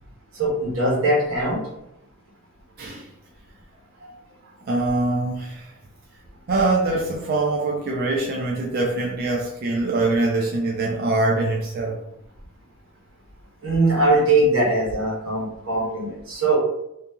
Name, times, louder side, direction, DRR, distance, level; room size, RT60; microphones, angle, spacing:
voice 1, 0.3-1.6 13.6-16.6, right 2 dB, 90° right, -4 dB, 1.2 m, -21 dB
voice 2, 4.7-5.6 6.5-12.0, right 2 dB, 50° right, -1 dB, 0.4 m, -23 dB
2.7 x 2.6 x 2.3 m, 0.82 s
head